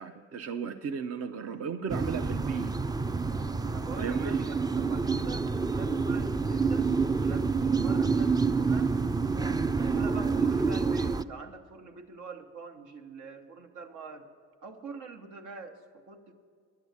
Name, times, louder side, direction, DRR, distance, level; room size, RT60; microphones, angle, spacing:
voice 1, 0.0-2.7 4.0-4.4, right 6 dB, 55° right, 6 dB, 0.7 m, -35 dB
sound 1, 1.9-11.2, right 4 dB, 15° right, 0.4 m, -28 dB
voice 2, 3.6-9.0 9.6-14.3 14.6-16.3, right 4 dB, 80° right, 4 dB, 1.4 m, -45 dB
11.0 x 8.0 x 9.6 m, 2.1 s
cardioid pair, 90°, 30 cm